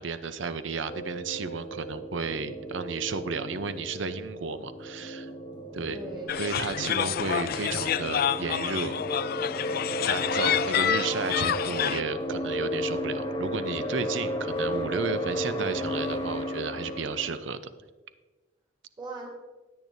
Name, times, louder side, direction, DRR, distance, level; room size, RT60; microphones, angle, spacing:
voice 1, 0.0-5.3 5.7-6.0 6.4-9.0 10.1-17.6, right 5 dB, 70° right, 12 dB, 0.6 m, -33 dB
sound 1, 0.9-17.4, equal, 25° left, 1.4 m, -34 dB
voice 2, 5.8-6.4 10.8-11.9 19.0-19.3, right 2 dB, 25° right, -3 dB, 3.0 m, -41 dB
sound 2, 6.3-12.0, left 9 dB, 50° left, 0.4 m, -28 dB
16.5 x 8.9 x 2.7 m, 1.2 s
head